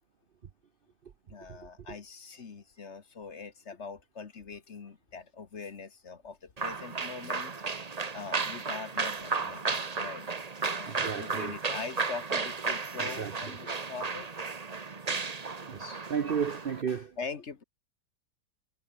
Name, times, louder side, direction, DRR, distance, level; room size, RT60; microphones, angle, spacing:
voice 1, 1.3-7.5 8.1-9.6 9.9-10.3 10.7-14.3 17.2-17.6, left 5 dB, 45° left, 1.5 m, -42 dB
sound 1, 6.6-16.8, right 4 dB, 25° right, 1.0 m, -34 dB
voice 2, 10.9-11.6 13.0-13.6 15.7-17.2, right 7 dB, 50° right, 0.7 m, -34 dB
omnidirectional pair, 1.8 m